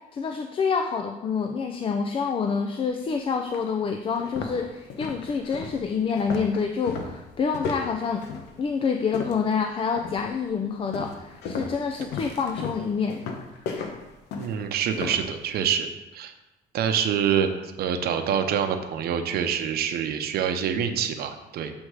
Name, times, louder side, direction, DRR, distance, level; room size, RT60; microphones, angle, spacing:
voice 1, 0.1-8.2 8.6-13.2, left 5 dB, 30° left, 5 dB, 0.4 m, -27 dB
sound 1, 2.9-3.0 3.5-3.7 4.1-9.6 10.0-10.4 10.9-15.3, left 5 dB, 85° left, 0.9 m, -35 dB
voice 2, 14.4-15.9 16.1-16.3 16.7-21.7, right 8 dB, 65° right, 7 dB, 0.7 m, -26 dB
7.8 x 3.5 x 4.8 m, 1.0 s
cardioid pair, 110°, 17 cm